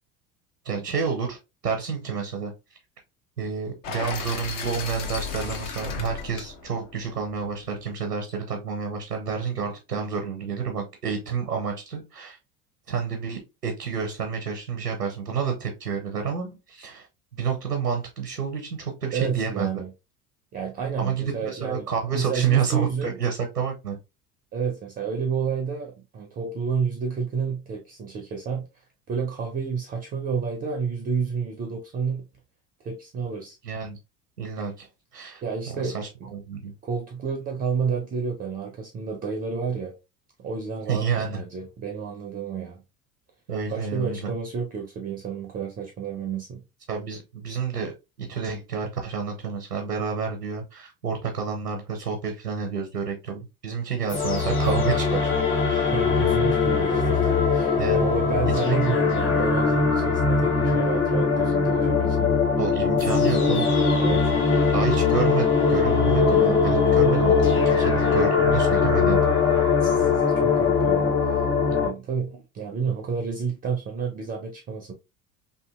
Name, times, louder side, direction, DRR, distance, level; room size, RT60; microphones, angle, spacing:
voice 1, 0.6-1.4 1.6-2.5 3.4-12.4 12.9-17.1 17.3-19.7 21.0-24.0 33.6-34.0 34.4-34.9 35.1-35.4 35.8-36.7 40.9-41.4 43.5-44.3 46.9-55.2 55.7-55.9 57.8-58.1 58.6-58.8 62.6-63.7 64.1-64.2 64.5-69.3, right 6 dB, 90° right, 0.7 m, -29 dB
sound 1, 3.8-7.9, left 6 dB, 55° left, 0.8 m, -35 dB
voice 2, 19.1-19.9 20.5-21.9 22.1-23.2 24.5-28.7 29.1-32.3 32.8-33.6 35.4-36.3 36.8-39.9 40.4-42.8 43.7-46.6 55.9-62.4 64.0-64.3 69.8-71.3 71.7-74.9, right 6 dB, 20° right, 0.4 m, -30 dB
sound 2, 54.1-71.9, left 5 dB, 70° left, 1.4 m, -21 dB
2.7 x 2.6 x 2.4 m
figure-of-eight pair, 70°, 45 cm